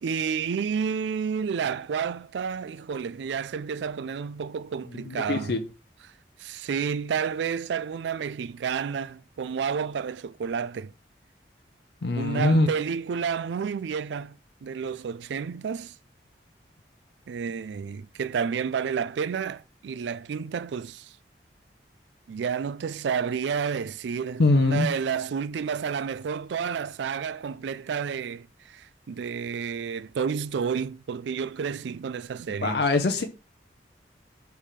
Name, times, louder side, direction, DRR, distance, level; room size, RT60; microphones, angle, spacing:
voice 1, 0.0-5.5 6.4-10.9 12.1-15.9 17.3-21.1 22.3-32.8, right 6 dB, 75° right, 0.3 m, -30 dB
voice 2, 4.9-5.6 12.0-12.7 24.4-24.9 32.6-33.2, left 2 dB, 65° left, 0.6 m, -23 dB
5.7 x 3.5 x 4.9 m
head